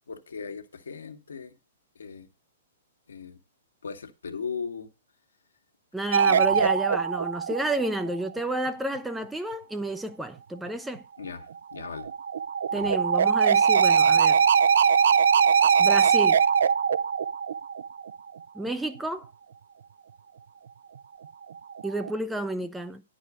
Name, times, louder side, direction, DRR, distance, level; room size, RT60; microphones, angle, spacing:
voice 1, 0.0-1.5 1.9-2.3 3.1-3.4 3.8-4.9 6.2-6.7 11.2-12.1 12.7-13.0, left 5 dB, 65° left, 1.5 m, -38 dB
voice 2, 5.9-11.0 12.7-14.4 15.8-16.4 18.5-19.3 21.8-23.0, right 1 dB, 5° right, 0.5 m, -31 dB
sound 1, 6.1-8.2 11.7-18.2 21.6-22.1, right 6 dB, 60° right, 0.4 m, -21 dB
10.5 x 4.8 x 6.0 m
figure-of-eight pair, 115°, 0 cm